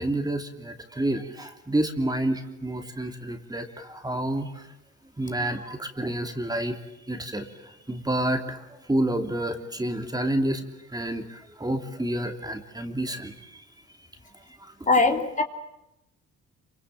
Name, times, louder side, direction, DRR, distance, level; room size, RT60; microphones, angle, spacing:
voice 1, 0.0-4.7 5.2-6.8 7.1-10.6 10.9-13.6 14.6-14.7, right 1 dB, 15° right, 5 dB, 3.1 m, -29 dB
voice 2, 14.9-15.4, left 3 dB, 25° left, 5 dB, 3.0 m, -21 dB
27.5 x 25.5 x 7.7 m, 0.88 s
cardioid pair, 90°, 30 cm